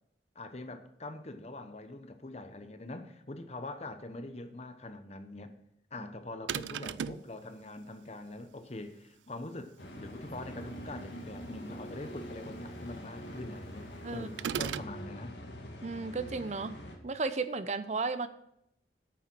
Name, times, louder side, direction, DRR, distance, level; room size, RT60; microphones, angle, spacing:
voice 1, 0.3-5.5 5.9-15.4, left 2 dB, 35° left, 0.9 m, -43 dB
sound 1, 6.5-7.3 14.4-15.0, right 8 dB, 90° right, 0.4 m, -35 dB
sound 2, 9.8-17.0, equal, 90° left, 2.1 m, -44 dB
voice 2, 14.0-14.6 15.8-16.8 17.0-18.3, right 4 dB, 40° right, 0.6 m, -34 dB
9.1 x 7.1 x 6.1 m
head